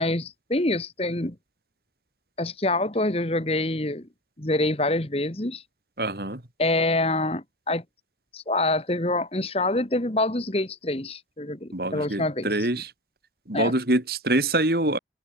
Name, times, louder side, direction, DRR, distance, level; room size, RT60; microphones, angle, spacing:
voice 1, 0.0-1.4 2.4-4.1 4.4-5.6 6.6-7.8 8.3-12.5 13.5-13.7, left 2 dB, 35° left, 1.7 m, -26 dB
voice 2, 6.0-6.4 11.7-12.9 13.5-15.0, right 2 dB, 55° right, 2.8 m, -25 dB
head